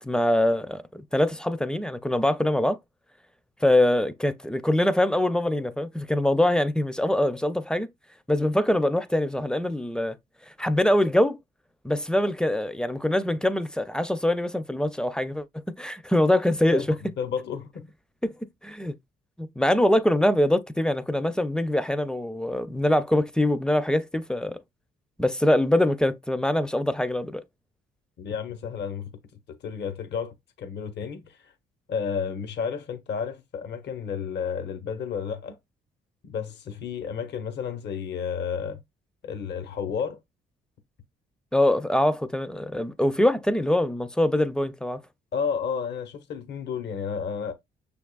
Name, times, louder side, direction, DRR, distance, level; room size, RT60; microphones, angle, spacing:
voice 1, 0.0-2.8 3.6-7.9 8.3-10.2 10.6-11.4 11.8-17.0 18.2-18.3 18.6-18.9 19.4-24.6 25.2-27.4 41.5-45.0, left 1 dB, 5° left, 0.4 m, -23 dB
voice 2, 17.2-17.9 28.2-29.1 29.5-31.5 31.9-35.6 36.3-38.8 39.2-40.2 45.3-47.5, left 6 dB, 60° left, 0.8 m, -31 dB
6.1 x 3.5 x 2.3 m
cardioid pair, 90°, 20 cm